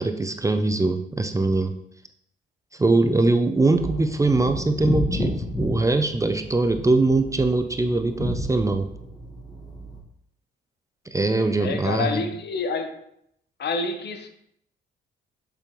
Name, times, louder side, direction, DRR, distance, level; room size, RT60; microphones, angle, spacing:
voice 1, 0.0-1.8 2.7-8.9 11.1-12.3, right 2 dB, 15° right, 7 dB, 0.5 m, -22 dB
sound 1, 3.6-10.0, equal, 20° left, 1.3 m, -32 dB
voice 2, 11.6-13.0 13.6-14.3, left 4 dB, 60° left, 7 dB, 0.9 m, -28 dB
6.8 x 5.1 x 3.1 m, 0.74 s
cardioid pair, 90°, 20 cm